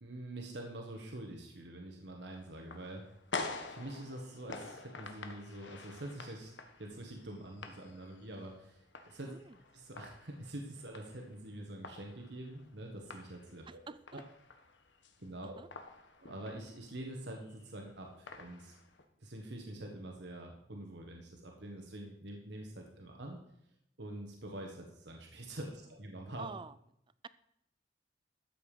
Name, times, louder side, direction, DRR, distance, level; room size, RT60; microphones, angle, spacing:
voice 1, 0.0-3.0 3.7-6.5 6.8-9.3 9.7-13.8 14.1-14.2 15.2-15.6 16.2-18.7 19.2-23.4 24.0-26.5, right 1 dB, 70° right, 1 dB, 1.6 m, -45 dB
sound 1, 2.4-19.1, left 3 dB, 80° left, 1.4 m, -48 dB
voice 2, 9.3-9.6 13.7-14.2 15.4-15.7 26.4-26.7, right 4 dB, 25° right, 16 dB, 0.4 m, -47 dB
13.0 x 8.1 x 5.1 m, 0.76 s
head